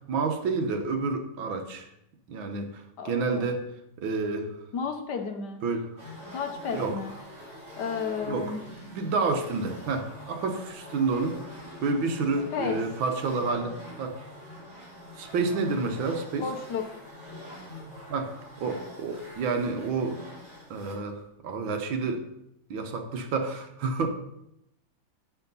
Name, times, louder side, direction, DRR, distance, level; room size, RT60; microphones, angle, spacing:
voice 1, 0.1-1.9 2.3-3.6 4.0-4.5 5.6-5.9 6.7-6.9 8.3-8.5 8.8-11.6 11.8-14.2 15.2-16.5 18.1-20.2 20.7-22.2 22.7-24.1, right 4 dB, 80° right, 6 dB, 1.8 m, -29 dB
voice 2, 3.0-3.5 4.7-5.6 6.3-7.1 7.8-8.6 12.5-12.9 16.4-16.9, left 6 dB, 60° left, 5 dB, 1.5 m, -32 dB
sound 1, 6.0-21.1, left 1 dB, 40° right, 4.1 m, -45 dB
8.6 x 6.9 x 5.4 m, 0.80 s
omnidirectional pair, 2.2 m